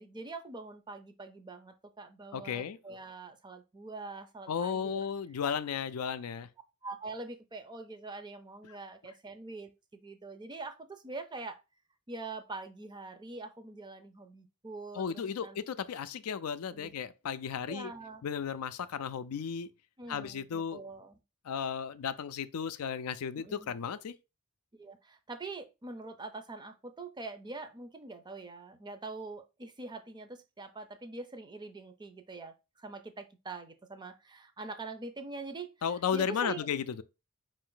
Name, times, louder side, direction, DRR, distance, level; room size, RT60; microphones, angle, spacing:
voice 1, 0.0-5.1 6.8-9.7 10.0-11.6 12.1-15.6 16.7-16.9 17.7-18.2 20.0-21.2 23.4-23.8 24.7-35.7 36.1-36.7, right 3 dB, 20° right, 0.5 m, -44 dB
voice 2, 2.3-2.8 4.5-6.5 15.0-17.9 18.2-19.7 20.1-20.8 21.4-24.1 35.8-37.0, left 7 dB, 75° left, 0.4 m, -34 dB
5.1 x 2.6 x 3.8 m
head